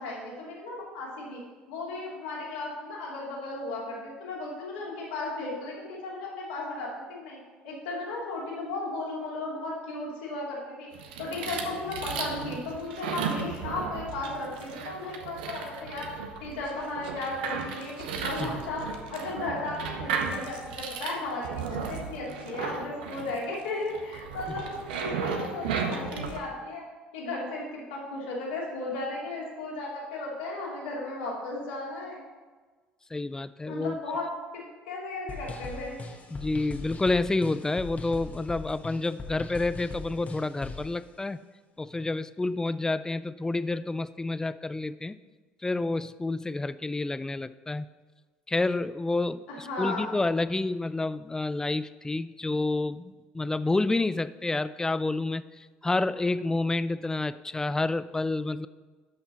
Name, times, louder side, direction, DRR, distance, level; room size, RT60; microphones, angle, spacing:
voice 1, 0.0-1.4 1.7-7.4 7.6-10.9 11.2-16.1 16.4-18.8 19.1-24.7 25.0-26.9 27.1-32.2 33.7-36.0 49.5-50.1, left 2 dB, 75° left, -5 dB, 2.6 m, -35 dB
sound 1, 10.9-26.4, right 6 dB, 75° right, 0.8 m, -35 dB
voice 2, 33.1-34.0 36.3-41.4 41.8-45.2 45.6-47.9 48.5-58.7, left 2 dB, 10° left, 15 dB, 0.3 m, -29 dB
sound 2, 35.3-40.9, left 3 dB, 30° left, 1.3 m, -40 dB
11.5 x 5.9 x 4.1 m, 1.4 s
figure-of-eight pair, 60°, 5 cm